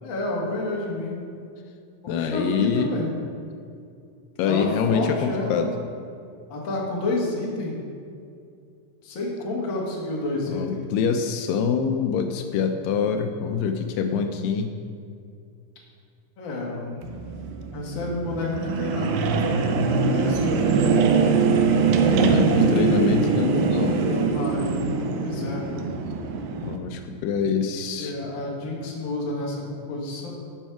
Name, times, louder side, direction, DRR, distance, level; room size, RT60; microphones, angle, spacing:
voice 1, 0.0-1.2 2.0-3.1 4.5-5.7 6.5-7.7 9.0-10.8 16.4-16.9 17.7-21.0 22.5-23.2 24.0-25.6 28.0-30.3, left 2 dB, 45° left, -3 dB, 1.7 m, -30 dB
voice 2, 2.1-2.9 4.4-5.7 10.5-14.7 22.0-24.1 26.6-28.1, left 6 dB, 85° left, 6 dB, 2.2 m, -25 dB
sound 1, 17.0-26.8, right 5 dB, 90° right, 2.4 m, -22 dB
11.5 x 5.5 x 4.6 m, 2.4 s
omnidirectional pair, 4.0 m